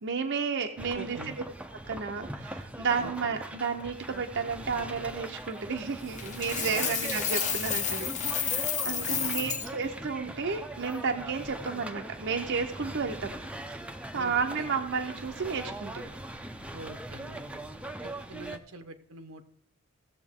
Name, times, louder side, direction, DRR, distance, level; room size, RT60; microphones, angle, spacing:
voice 1, 0.0-1.2 1.9-13.3 14.1-16.1, right 5 dB, 60° right, 4 dB, 0.7 m, -32 dB
sound 1, 0.8-18.6, right 1 dB, 5° right, 0.6 m, -41 dB
voice 2, 0.9-1.4 3.0-3.4 6.7-7.0 8.8-9.6 14.1-14.7 16.7-17.6 18.0-19.4, right 2 dB, 80° right, 8 dB, 1.0 m, -44 dB
Coin (dropping), 6.2-9.7, left 7 dB, 35° left, 1.0 m, -31 dB
16.5 x 7.1 x 3.6 m, 0.71 s
head